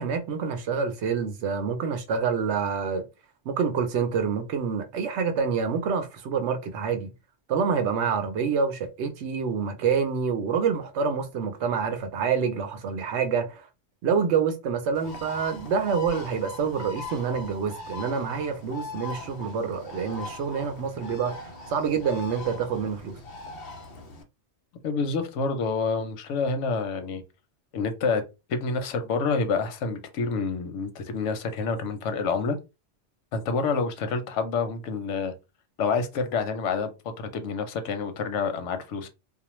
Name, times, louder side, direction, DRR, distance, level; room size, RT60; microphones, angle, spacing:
voice 1, 0.0-3.0 3.5-7.1 7.5-13.6 14.0-21.3 21.7-23.2, right 6 dB, 75° right, 0.8 m, -27 dB
Bird, 14.9-24.2, left 2 dB, 60° left, 0.7 m, -40 dB
voice 2, 24.8-27.2 27.7-28.2 28.5-32.6 33.3-35.3 35.8-36.9 37.2-39.1, left 4 dB, 90° left, 0.9 m, -28 dB
2.4 x 2.0 x 3.0 m
omnidirectional pair, 1.2 m